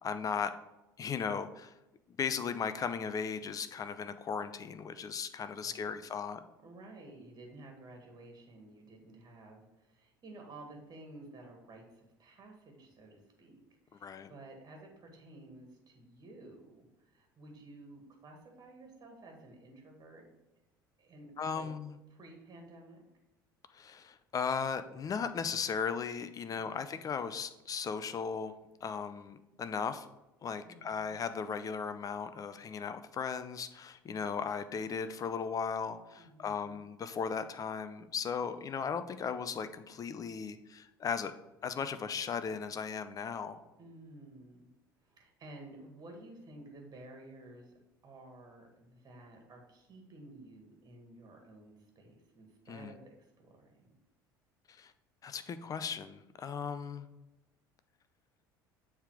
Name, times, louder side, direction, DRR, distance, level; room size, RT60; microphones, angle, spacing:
voice 1, 0.0-0.5 1.0-1.7 2.2-6.4 14.0-14.3 21.4-22.0 23.7-28.5 28.8-30.1 30.4-41.3 41.6-43.6 52.7-52.9 54.7-54.9 55.2-57.1, left 6 dB, 30° left, 11 dB, 0.6 m, -37 dB
voice 2, 5.6-6.0 6.6-20.2 21.0-21.7 22.1-23.0 26.5-26.9 30.6-31.2 36.2-36.8 43.7-44.7 45.0-53.9, right 2 dB, 35° right, 2 dB, 1.8 m, -53 dB
7.2 x 3.6 x 4.8 m, 0.97 s
figure-of-eight pair, 65°, 11 cm